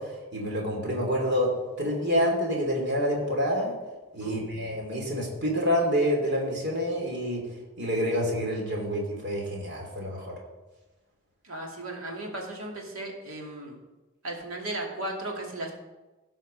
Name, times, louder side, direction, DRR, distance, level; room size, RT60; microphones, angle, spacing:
voice 1, 0.0-3.7 4.1-7.5 7.8-10.3, equal, 50° right, -1 dB, 2.9 m, -27 dB
voice 2, 4.2-4.6 11.4-13.8 14.2-15.7, right 1 dB, 75° right, 0 dB, 2.4 m, -36 dB
16.5 x 5.7 x 5.2 m, 1.1 s
head